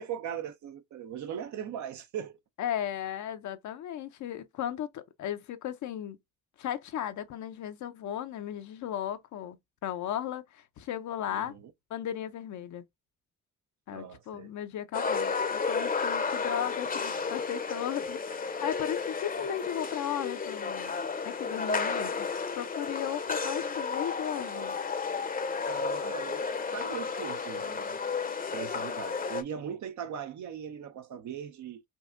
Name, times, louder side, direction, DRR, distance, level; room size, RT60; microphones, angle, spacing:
voice 1, 0.0-2.4 11.3-11.7 13.9-14.5 25.7-26.5 26.7-28.0 28.5-31.8, right 8 dB, 70° right, 0.7 m, -39 dB
voice 2, 2.6-6.2 6.6-9.6 9.8-11.5 11.9-12.8 13.9-20.9 21.2-22.3 22.6-24.8, left 10 dB, 70° left, 0.7 m, -36 dB
sound 1, 14.9-29.4, left 5 dB, 30° left, 0.7 m, -32 dB
5.4 x 2.3 x 2.5 m
supercardioid pair, 55°, 30 cm